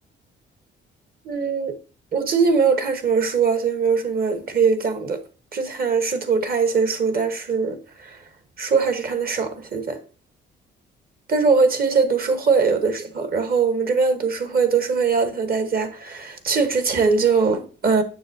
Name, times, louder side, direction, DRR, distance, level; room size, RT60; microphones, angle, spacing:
voice 1, 1.2-1.7 2.1-5.2 5.5-8.2 8.6-10.0 11.3-18.0, right 5 dB, 50° right, 1.2 m, -21 dB
7.0 x 6.3 x 2.7 m
cardioid pair, 90°, 20 cm